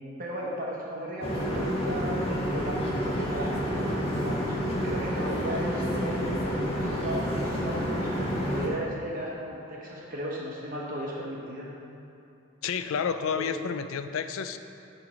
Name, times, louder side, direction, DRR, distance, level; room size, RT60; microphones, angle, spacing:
voice 1, 0.2-4.6 4.8-11.8 13.4-13.6, equal, 40° right, -4 dB, 0.9 m, -36 dB
sound 1, 1.2-8.7, equal, 30° left, 0.9 m, -29 dB
voice 2, 12.6-14.6, left 6 dB, 75° left, 10 dB, 0.4 m, -30 dB
8.3 x 3.3 x 6.0 m, 2.7 s
head